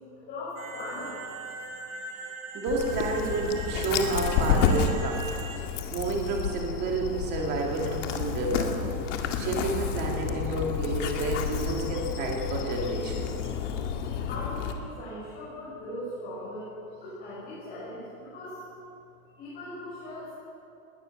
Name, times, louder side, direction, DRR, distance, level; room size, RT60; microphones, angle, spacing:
voice 1, 0.3-1.1 14.3-16.7 17.0-18.6 19.4-20.3, left 1 dB, 20° left, -9 dB, 6.1 m, -39 dB
sound 1, 0.6-5.6, right 3 dB, 60° right, 4.0 m, -40 dB
voice 2, 2.5-5.3 5.6-5.7 5.9-13.3, right 3 dB, 25° right, 0 dB, 2.5 m, -30 dB
Dog, 2.7-14.7, left 7 dB, 55° left, 2.1 m, -30 dB
21.0 x 19.0 x 6.6 m, 2.7 s
supercardioid pair, 180°, 44 cm